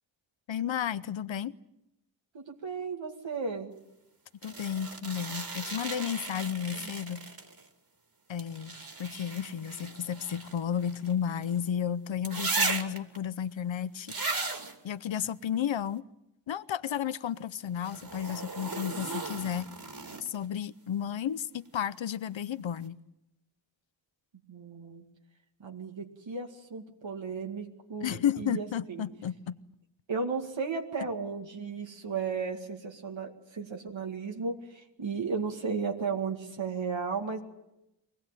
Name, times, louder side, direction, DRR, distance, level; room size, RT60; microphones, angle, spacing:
voice 1, 0.5-1.5 4.4-7.2 8.3-8.7 9.0-14.1 14.8-16.1 16.5-19.7 20.2-23.0 28.0-29.6, left 9 dB, 85° left, 0.8 m, -32 dB
voice 2, 2.3-3.7 6.7-6.9 19.3-19.4 24.5-25.0 25.6-29.1 30.1-37.4, right 5 dB, 90° right, 2.3 m, -35 dB
sound 1, 4.4-7.7 8.4-11.6 12.2-13.2 14.1-14.8 17.8-20.5 22.3-22.4, right 3 dB, 50° right, 2.9 m, -36 dB
24.0 x 19.0 x 9.1 m
wide cardioid pair, 110°, 44 cm